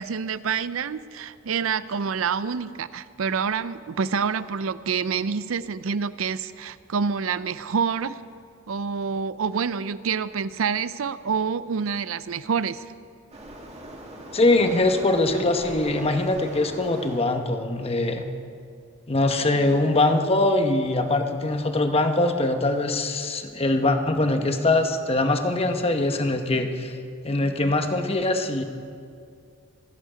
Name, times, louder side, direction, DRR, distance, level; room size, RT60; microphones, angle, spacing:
voice 1, 0.0-8.2 8.7-12.8, right 6 dB, 85° right, 15 dB, 0.5 m, -27 dB
Waves surf, 13.3-17.3, right 1 dB, 35° right, 1.8 m, -40 dB
voice 2, 14.3-18.2 19.1-26.9 27.2-28.6, left 2 dB, 30° left, 6 dB, 1.0 m, -22 dB
26.0 x 9.2 x 5.0 m, 2.3 s
head